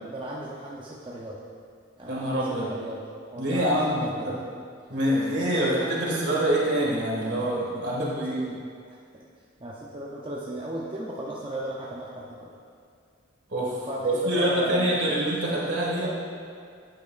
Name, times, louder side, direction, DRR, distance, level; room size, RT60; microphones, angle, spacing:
voice 1, 0.0-1.4 2.0-3.0 3.3-4.3 5.4-5.8 7.4-7.5 8.0-9.2 9.6-12.6 13.9-15.7, right 1 dB, 25° right, -5 dB, 0.6 m, -36 dB
voice 2, 2.1-2.7 3.4-4.4 4.9-8.4 13.5-16.1, right 1 dB, 65° right, -5 dB, 2.0 m, -26 dB
10.0 x 8.6 x 2.5 m, 2.2 s
head